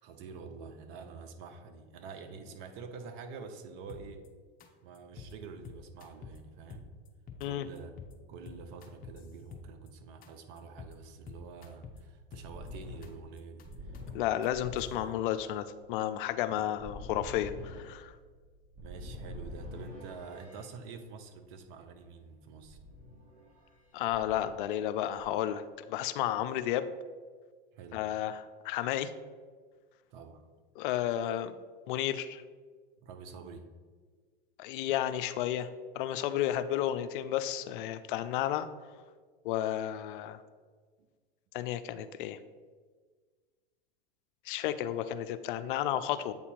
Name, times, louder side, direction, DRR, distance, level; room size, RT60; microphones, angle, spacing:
voice 1, 0.0-4.2 4.8-6.9 7.4-7.9 8.3-14.0 16.5-16.6 18.8-22.8 27.7-28.0 30.1-30.4 33.0-33.7, right 5 dB, 55° right, 7 dB, 0.8 m, -47 dB
sound 1, 3.9-4.3 4.6-4.7 4.9-5.3 5.6-6.4 6.7-7.5 7.7-8.1 8.4-9.9 10.2-10.3 10.6-10.9 11.3-12.0 12.3-13.1 13.4-14.9, left 6 dB, 30° left, 0.7 m, -47 dB
sound 2, 12.3-20.7 22.6-23.8 24.1-25.2, left 1 dB, 25° right, 1.5 m, -46 dB
voice 2, 14.1-18.1 23.9-26.9 27.9-29.1 30.8-31.5 31.9-32.4 34.6-35.7 36.0-38.7 39.4-40.4 41.5-42.4 44.5-46.3, left 12 dB, 60° left, 12 dB, 0.4 m, -32 dB
8.2 x 2.8 x 4.3 m, 1.5 s
hypercardioid pair, 100°, 29 cm